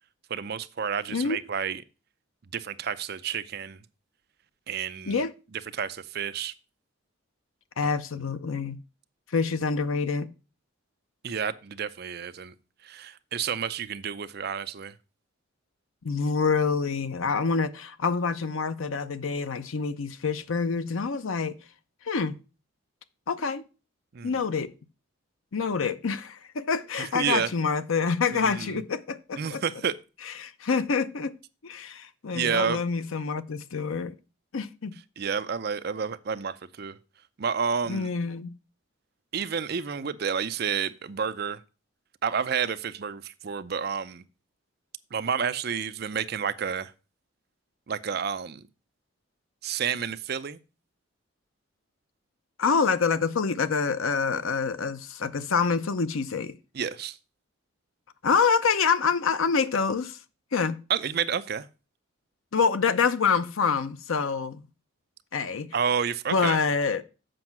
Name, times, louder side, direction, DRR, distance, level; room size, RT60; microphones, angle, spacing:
voice 1, 0.3-1.8 2.5-3.8 4.7-5.2 5.7-6.5 7.8-7.9 11.2-12.5 12.8-14.9 24.1-24.4 27.0-27.5 28.4-28.8 29.4-29.9 32.3-32.8 35.2-37.0 37.4-38.1 39.3-41.6 42.2-44.2 45.1-46.9 47.9-48.6 49.6-50.6 56.7-57.2 60.9-61.7 65.7-66.6, right 7 dB, 50° right, 0.5 m, -30 dB
voice 2, 7.8-8.8 9.3-10.3 16.0-21.6 22.0-22.4 23.3-23.6 24.2-24.7 25.5-29.6 30.2-31.3 31.6-34.2 34.5-34.9 37.9-38.5 52.6-56.5 58.2-60.2 60.5-60.8 62.5-64.6 65.3-65.7 66.3-67.0, left 5 dB, 75° left, 0.6 m, -26 dB
7.7 x 5.3 x 5.9 m
head